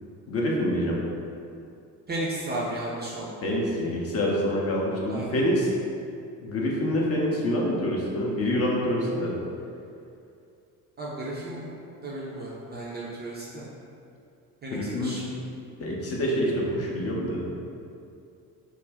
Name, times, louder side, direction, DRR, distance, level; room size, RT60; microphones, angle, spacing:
voice 1, 0.3-1.0 3.4-5.7 6.4-9.4 14.7-15.4 15.8-17.5, equal, 35° left, -3 dB, 0.5 m, -26 dB
voice 2, 2.1-3.5 5.1-5.3 11.0-11.8 12.0-13.7 14.6-15.2, right 1 dB, 25° right, -6 dB, 0.4 m, -34 dB
2.4 x 2.1 x 3.3 m, 2.5 s
hypercardioid pair, 50°, 46 cm